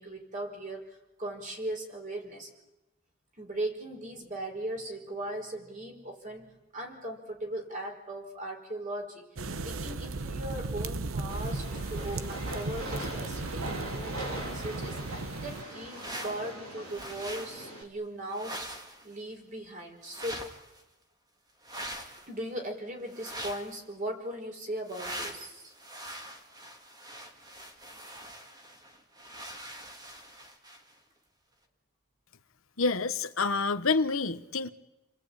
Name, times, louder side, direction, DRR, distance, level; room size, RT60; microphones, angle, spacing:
voice 1, 0.0-2.5 3.4-6.5 6.7-9.3 9.6-18.7 19.0-20.4 22.3-25.7, right 1 dB, 35° right, 2 dB, 4.9 m, -38 dB
sound 1, 9.4-15.6, right 3 dB, 65° right, 0.9 m, -36 dB
Train, 11.3-17.8, right 1 dB, 85° right, 4.0 m, -41 dB
sound 2, 15.5-16.6 16.8-17.6 18.3-19.1 20.0-20.8 21.6-22.3 23.1-23.8 24.9-30.9, right 1 dB, 20° right, 2.2 m, -43 dB
voice 2, 32.8-34.7, left 4 dB, 65° left, 8 dB, 1.2 m, -28 dB
29.5 x 21.5 x 8.9 m, 1.0 s
head